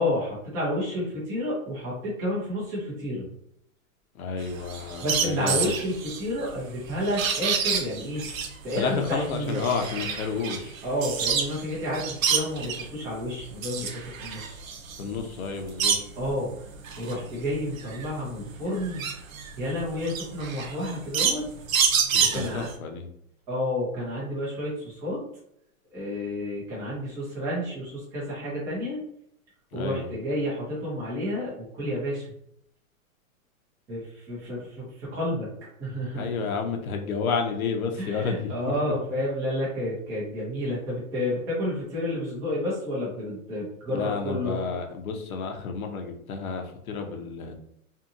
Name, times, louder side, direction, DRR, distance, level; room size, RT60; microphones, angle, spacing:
voice 1, 0.0-3.3 5.0-8.2 8.6-9.6 10.8-14.6 16.2-16.5 17.0-19.0 19.6-21.4 22.2-22.7 23.5-25.2 25.9-29.0 29.7-32.3 33.9-35.5 35.8-36.3 38.0-44.6, left 1 dB, 10° right, -7 dB, 0.4 m, -30 dB
voice 2, 4.2-5.8 8.7-10.8 15.0-16.0 22.1-23.1 29.7-30.1 36.1-38.5 43.9-47.5, left 5 dB, 80° left, 4 dB, 0.8 m, -30 dB
sound 1, 4.4-11.6 11.9-12.9 13.4-16.3 16.7-22.7, right 6 dB, 70° right, 0.7 m, -28 dB
2.7 x 2.5 x 2.5 m, 0.73 s
hypercardioid pair, 135°, 43 cm